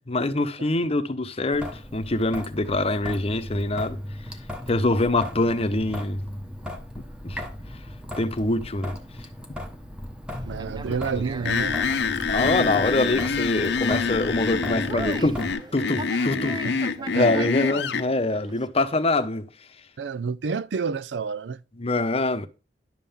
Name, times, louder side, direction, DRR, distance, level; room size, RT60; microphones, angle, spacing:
voice 1, 0.0-4.0 4.7-6.2 7.2-7.4 8.2-8.9 12.3-16.6 17.1-19.5 21.8-22.5, left 2 dB, 35° left, 0.8 m, -24 dB
Traffic noise roadway noise / Drip / Trickle dribble, 1.5-15.5, left 1 dB, 5° right, 1.1 m, -37 dB
Conversation, 10.3-18.7, right 3 dB, 25° right, 0.4 m, -40 dB
voice 2, 10.5-12.8 16.6-17.7 20.0-21.6, right 5 dB, 80° right, 0.5 m, -31 dB
sound 1, 11.5-18.1, left 5 dB, 70° left, 0.6 m, -26 dB
11.0 x 3.7 x 7.0 m
head